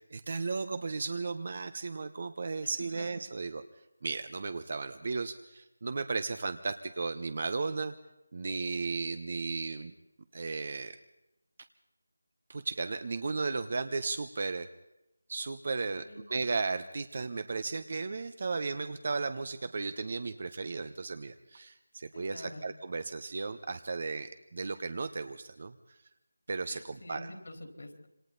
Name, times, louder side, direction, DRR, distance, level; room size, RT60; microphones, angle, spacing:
voice 1, 0.1-3.6 4.0-7.9 8.3-9.9 10.3-11.0 12.5-14.7 15.3-25.7 26.5-27.3, right 4 dB, 45° right, 10 dB, 1.0 m, -35 dB
voice 2, 2.6-3.1 15.9-16.3 22.1-22.7 26.7-28.1, left 1 dB, 65° left, 5 dB, 4.2 m, -47 dB
27.0 x 24.0 x 4.1 m, 0.91 s
figure-of-eight pair, 170°, 0 cm